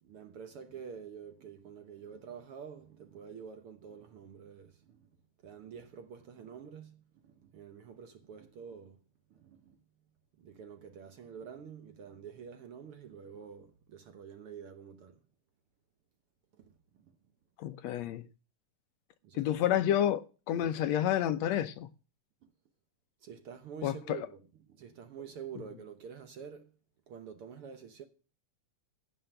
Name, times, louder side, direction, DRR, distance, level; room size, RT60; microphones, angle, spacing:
voice 1, 0.0-5.1 5.4-9.0 9.3-9.8 10.4-15.2 16.5-17.1 19.2-19.8 23.2-24.4 24.7-26.7 27.1-28.0, right 7 dB, 60° right, 1.6 m, -48 dB
voice 2, 17.6-18.3 19.3-21.9 23.8-24.2, left 11 dB, 75° left, 1.8 m, -30 dB
15.5 x 5.7 x 7.8 m
omnidirectional pair, 3.4 m